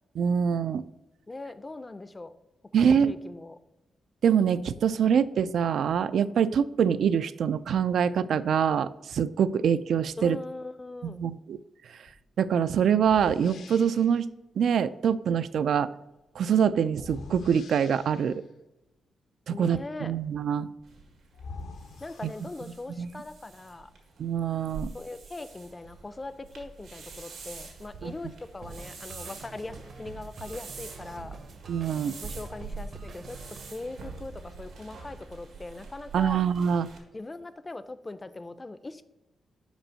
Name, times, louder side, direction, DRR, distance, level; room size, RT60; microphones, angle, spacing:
voice 1, 0.2-0.8 2.7-3.1 4.2-10.4 11.0-11.6 12.4-14.3 14.6-15.9 16.4-18.4 19.6-20.7 22.2-22.3 23.0-23.1 24.2-24.9 28.0-28.1 31.7-32.1 36.1-36.9, right 7 dB, 70° right, 15 dB, 0.3 m, -25 dB
voice 2, 1.3-2.3 2.8-3.6 10.2-11.2 19.5-20.1 22.0-23.9 24.9-31.4 32.2-36.4 37.1-39.0, left 2 dB, 20° left, 12 dB, 0.4 m, -40 dB
sound 1, 12.1-12.2 13.0-14.3 16.9-18.5 20.8-20.9 21.3-22.9, left 4 dB, 75° left, 0.7 m, -45 dB
sound 2, 20.8-37.0, right 4 dB, 90° right, 1.7 m, -45 dB
sound 3, 28.6-33.7, right 3 dB, 50° right, 0.7 m, -46 dB
5.4 x 5.1 x 6.3 m, 0.97 s
wide cardioid pair, 150°, 0 cm